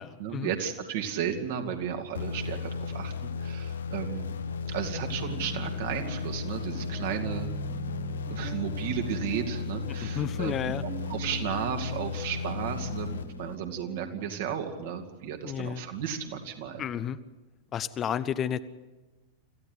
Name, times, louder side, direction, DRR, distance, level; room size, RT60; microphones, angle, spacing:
voice 1, 0.2-4.4 4.7-7.5 8.3-10.8 11.1-16.8, right 8 dB, 55° right, 3 dB, 2.7 m, -34 dB
sound 1, 2.1-13.9, left 5 dB, 65° left, 1.0 m, -35 dB
sound 2, 4.6-14.6, right 7 dB, 25° right, 1.2 m, -44 dB
voice 2, 10.0-10.8 15.4-15.8 16.8-17.2 17.7-18.6, left 9 dB, 30° left, 12 dB, 0.8 m, -31 dB
26.0 x 15.0 x 8.3 m, 1.2 s
figure-of-eight pair, 90°, 0 cm